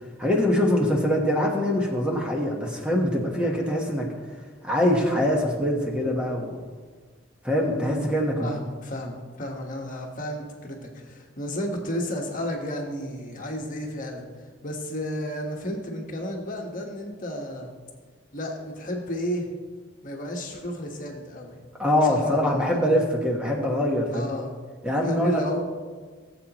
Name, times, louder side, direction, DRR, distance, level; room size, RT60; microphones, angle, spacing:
voice 1, 0.2-4.1 4.6-6.6 7.4-8.5 21.8-24.3 24.8-25.4, left 1 dB, 5° right, -1 dB, 1.2 m, -23 dB
voice 2, 8.4-14.2 14.6-17.7 18.3-19.5 20.0-21.6 22.1-22.8 24.1-24.5 25.0-25.6, equal, 45° left, 1 dB, 1.3 m, -32 dB
17.0 x 7.8 x 3.0 m, 1.5 s
head